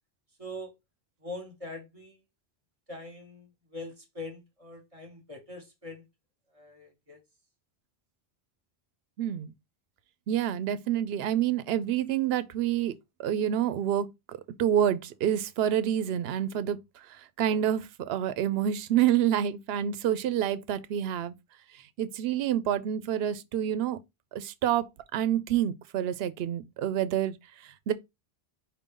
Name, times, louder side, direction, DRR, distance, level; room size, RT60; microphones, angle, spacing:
voice 1, 0.4-0.7 1.2-2.2 2.9-6.0 6.5-7.2, left 2 dB, 35° right, 1.2 m, -42 dB
voice 2, 9.2-9.5 10.3-12.9 13.2-21.3 22.0-24.0 24.3-27.9, right 10 dB, 75° right, 0.8 m, -28 dB
5.2 x 2.6 x 3.6 m
omnidirectional pair, 1.0 m